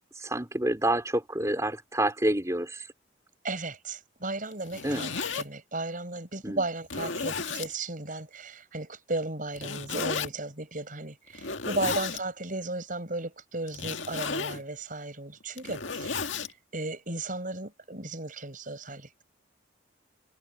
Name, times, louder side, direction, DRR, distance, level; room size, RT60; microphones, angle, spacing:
voice 1, 0.1-2.9 4.8-5.0 6.4-6.6, right 1 dB, 15° right, 4.2 m, -28 dB
voice 2, 3.4-16.3 16.7-19.2, right 2 dB, 45° right, 7.0 m, -35 dB
Zipper (clothing), 4.5-5.4 6.2-6.3 6.8-7.7 9.5-10.3 11.3-12.2 13.7-14.6 15.4-16.5, left 5 dB, 90° left, 2.0 m, -33 dB
head